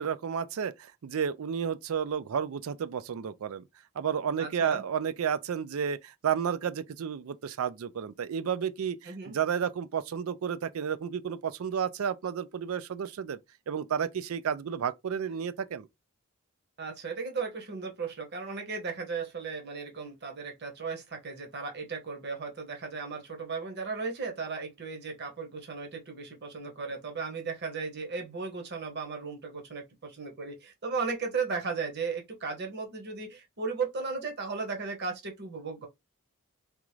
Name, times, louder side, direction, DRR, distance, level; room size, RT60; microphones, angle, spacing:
voice 1, 0.0-3.6 4.0-13.4 13.7-15.9, right 7 dB, 75° right, 0.4 m, -31 dB
voice 2, 4.4-4.8 9.0-9.4 16.8-35.9, right 4 dB, 50° right, 1.0 m, -36 dB
3.6 x 2.5 x 3.0 m
head